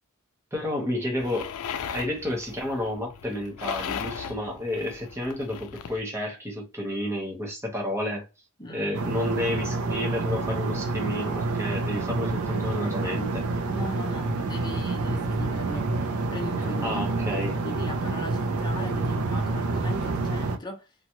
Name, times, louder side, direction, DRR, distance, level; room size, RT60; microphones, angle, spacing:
voice 1, 0.5-1.5 1.9-8.3 8.7-13.5 16.8-17.6, left 1 dB, 10° right, 1.0 m, -31 dB
sound 1, 1.2-6.0, left 7 dB, 90° left, 0.4 m, -37 dB
voice 2, 8.6-9.0 13.7-16.0 16.3-20.9, left 1 dB, 20° left, 0.8 m, -38 dB
sound 2, 8.9-20.6, right 3 dB, 85° right, 0.5 m, -28 dB
3.0 x 2.4 x 2.8 m
head